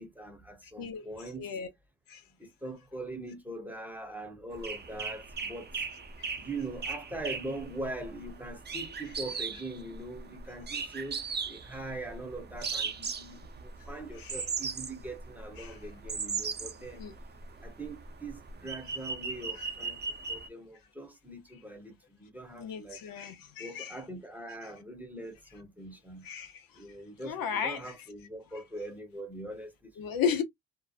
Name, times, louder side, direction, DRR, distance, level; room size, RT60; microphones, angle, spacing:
voice 1, 0.0-1.6 2.4-5.9 6.4-17.0 17.6-20.0 20.3-23.0 23.6-26.3 26.7-29.9, right 2 dB, 5° right, 0.8 m, -42 dB
voice 2, 1.4-1.7 2.1-2.2 6.2-6.3 14.2-14.4 15.6-15.8 16.9-17.1 22.6-23.9 26.2-26.6 27.2-27.9 30.0-30.4, left 7 dB, 85° left, 0.7 m, -34 dB
sound 1, 4.5-20.5, right 5 dB, 30° right, 0.5 m, -38 dB
2.8 x 2.1 x 2.3 m
cardioid pair, 100°, 33 cm